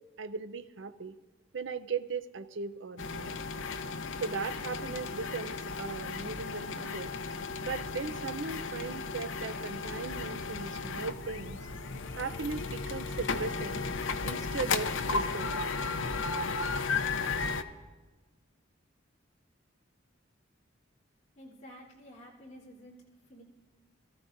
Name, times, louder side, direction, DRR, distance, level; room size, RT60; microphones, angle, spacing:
voice 1, 0.2-1.2 1.5-3.4 4.2-7.1 7.6-11.6 12.2-13.9 14.2-15.6, right 4 dB, 70° right, 12 dB, 0.6 m, -38 dB
sound 1, 3.0-17.6, left 4 dB, 75° left, 0.7 m, -35 dB
voice 2, 21.3-23.4, equal, 35° left, -7 dB, 3.3 m, -51 dB
22.0 x 14.5 x 2.6 m, 1.3 s
head